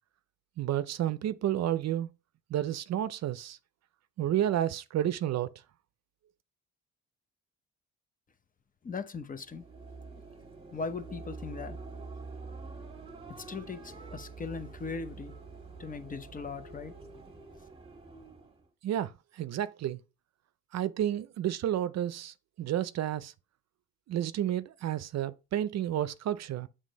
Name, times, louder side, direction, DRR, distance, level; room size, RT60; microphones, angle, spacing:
voice 1, 0.6-2.1 2.5-3.6 4.2-5.5 18.8-20.0 20.7-23.3 24.1-26.7, right 11 dB, 60° right, 0.5 m, -31 dB
voice 2, 8.8-9.7 10.7-11.8 13.3-15.4 15.8-16.9, left 4 dB, 25° left, 0.8 m, -39 dB
sound 1, 9.3-18.7, right 4 dB, 20° right, 1.6 m, -46 dB
7.4 x 3.3 x 5.2 m
cardioid pair, 90°, 30 cm